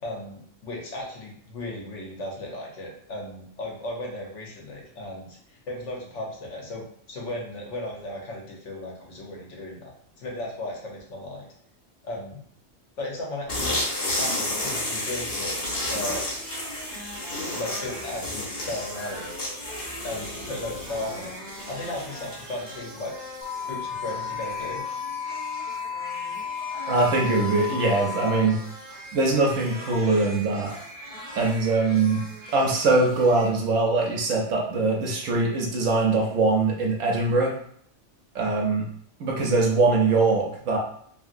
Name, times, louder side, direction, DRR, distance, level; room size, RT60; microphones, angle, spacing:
voice 1, 0.0-11.5 12.0-12.4 13.0-13.8 14.2-15.5 15.9-16.3 17.5-19.3 20.0-23.1 23.7-24.8, left 1 dB, 70° left, -2 dB, 1.2 m, -36 dB
sound 1, 13.5-23.0, left 1 dB, 50° left, 1.1 m, -31 dB
sound 2, 15.7-33.5, equal, 50° right, 0.8 m, -41 dB
sound 3, 23.4-28.4, left 7 dB, 35° left, 0.7 m, -33 dB
voice 2, 26.9-28.6 29.1-30.7 31.4-32.2 32.5-37.5 38.3-38.9 39.2-40.8, right 3 dB, 85° right, -1 dB, 1.0 m, -22 dB
2.8 x 2.8 x 2.5 m, 0.63 s
omnidirectional pair, 1.3 m